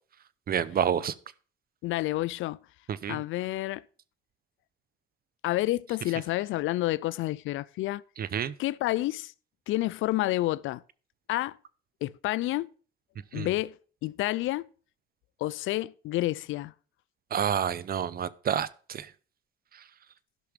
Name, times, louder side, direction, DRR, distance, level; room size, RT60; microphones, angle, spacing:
voice 1, 0.5-1.1 2.9-3.2 8.2-8.5 13.3-13.5 17.3-19.1, right 8 dB, 50° right, 0.7 m, -29 dB
voice 2, 1.8-2.6 3.1-3.8 5.4-8.0 8.6-9.3 9.7-10.8 11.3-11.6 12.0-12.7 13.3-14.7 15.4-16.7, left 17 dB, 85° left, 0.4 m, -29 dB
12.0 x 5.9 x 5.1 m
cardioid pair, 90°, 20 cm